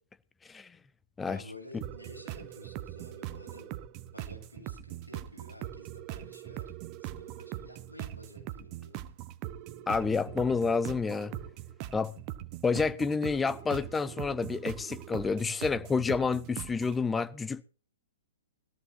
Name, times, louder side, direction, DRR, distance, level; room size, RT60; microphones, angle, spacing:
voice 1, 1.3-3.7 4.1-9.0, left 1 dB, 90° left, 7.8 m, -51 dB
sound 1, 1.8-17.0, right 13 dB, 35° right, 1.0 m, -41 dB
voice 2, 9.9-11.3 11.9-12.1 12.6-17.6, left 4 dB, 10° left, 0.9 m, -29 dB
20.5 x 14.0 x 2.7 m
figure-of-eight pair, 115°, 0 cm